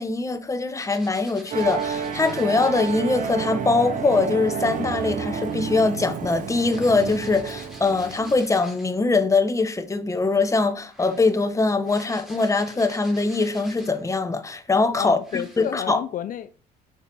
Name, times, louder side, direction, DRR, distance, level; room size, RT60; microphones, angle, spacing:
voice 1, 0.0-16.0, left 3 dB, 20° left, 1.0 m, -22 dB
sound 1, 0.8-3.0 4.7-9.0 10.2-14.1 14.7-14.8 15.2-15.8, equal, ahead, 3.0 m, -48 dB
Musical instrument, 1.5-8.4, right 6 dB, 50° right, 1.1 m, -30 dB
voice 2, 15.0-16.5, left 10 dB, 55° left, 0.5 m, -30 dB
6.7 x 6.1 x 4.6 m
cardioid pair, 110°, 17 cm